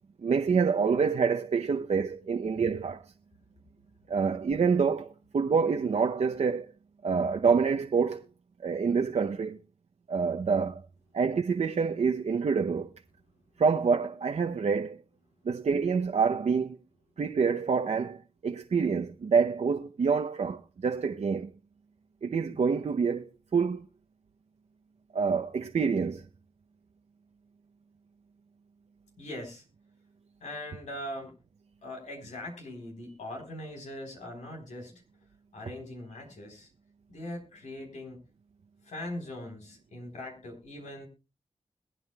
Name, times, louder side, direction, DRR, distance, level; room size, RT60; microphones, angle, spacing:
voice 1, 0.2-3.1 4.1-6.7 7.0-8.3 8.6-9.6 10.1-10.8 11.1-12.9 13.6-15.0 15.4-16.8 17.2-21.5 22.2-23.9 25.1-26.2, right 5 dB, 70° right, 0.7 m, -27 dB
voice 2, 29.2-29.6 30.4-31.3 31.8-35.0 35.5-36.7 37.1-38.2 38.8-41.1, left 1 dB, 90° left, 4.0 m, -41 dB
22.0 x 9.2 x 2.3 m
cardioid pair, 40°, 12 cm